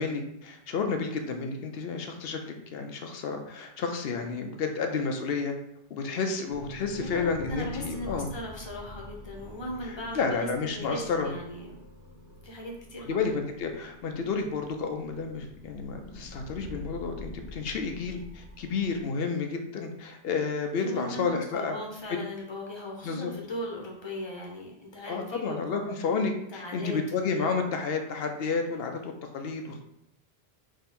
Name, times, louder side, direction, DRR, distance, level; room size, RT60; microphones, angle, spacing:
voice 1, 0.0-5.5 5.9-8.3 9.8-11.3 13.1-21.8 22.1-22.2 23.0-23.3 25.1-29.8, left 4 dB, 70° left, 4 dB, 0.8 m, -31 dB
sound 1, 6.5-19.0, left 1 dB, 80° right, 1.1 m, -46 dB
voice 2, 6.9-11.7 12.4-13.2 20.8-26.1 26.5-27.5, left 1 dB, 30° left, -1 dB, 0.9 m, -38 dB
3.7 x 2.8 x 4.2 m, 0.76 s
omnidirectional pair, 1.1 m